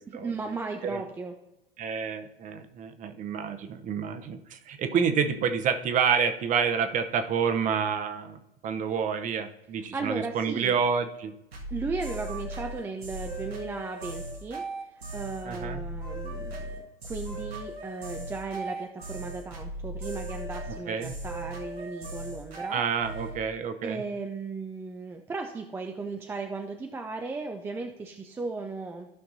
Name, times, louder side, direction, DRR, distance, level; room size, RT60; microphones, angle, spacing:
voice 1, 0.1-1.3 9.9-10.8 11.7-14.6 15.1-22.8 23.8-29.1, right 3 dB, 10° right, 4 dB, 0.4 m, -36 dB
voice 2, 1.8-11.3 15.4-15.8 20.9-21.1 22.7-24.0, right 6 dB, 25° right, 9 dB, 0.8 m, -28 dB
sound 1, 11.5-23.4, right 2 dB, 80° right, 1.8 m, -37 dB
14.5 x 5.7 x 2.7 m, 0.94 s
figure-of-eight pair, 95°, 30 cm